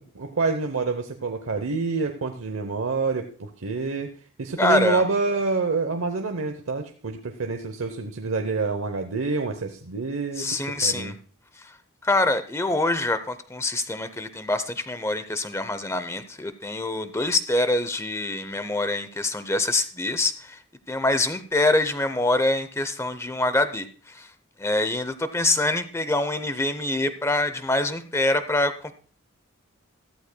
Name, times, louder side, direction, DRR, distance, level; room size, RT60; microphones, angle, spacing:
voice 1, 0.1-4.1 4.4-11.2, right 4 dB, 75° right, 5 dB, 0.8 m, -27 dB
voice 2, 4.6-5.0 10.4-11.1 12.0-20.6 20.9-24.3 24.6-28.9, left 2 dB, 15° left, 11 dB, 0.7 m, -25 dB
14.5 x 13.0 x 2.2 m, 0.40 s
head